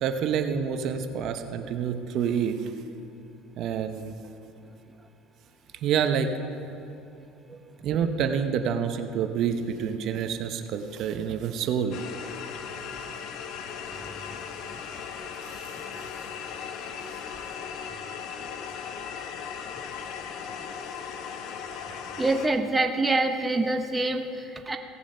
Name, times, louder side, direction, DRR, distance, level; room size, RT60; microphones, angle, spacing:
voice 1, 0.0-2.7 3.6-4.1 5.8-6.3 7.8-12.0 15.5-15.7, right 7 dB, 55° right, 7 dB, 0.8 m, -27 dB
sound 1, 11.9-22.5, left 7 dB, 60° left, 0.9 m, -37 dB
voice 2, 22.2-24.8, right 2 dB, 15° right, 5 dB, 0.8 m, -25 dB
17.0 x 7.1 x 5.5 m, 2.7 s
supercardioid pair, 105°, 0 cm